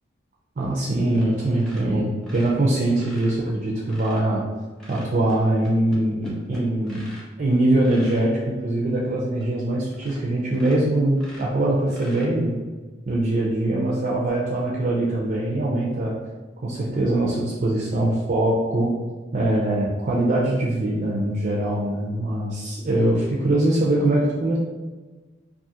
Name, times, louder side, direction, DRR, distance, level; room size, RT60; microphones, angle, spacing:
voice 1, 0.6-4.4 4.9-7.1 7.4-12.5 13.1-16.1 16.6-18.9 19.3-24.6, right 1 dB, 45° right, -5 dB, 0.4 m, -22 dB
sound 1, 1.1-1.3 1.6-4.3 4.8-7.3 7.8-8.3 8.9-9.0 9.4-9.5 9.9-10.2 10.5-12.7 14.2-14.3, equal, 5° left, 0.5 m, -42 dB
2.4 x 2.4 x 2.8 m, 1.3 s
head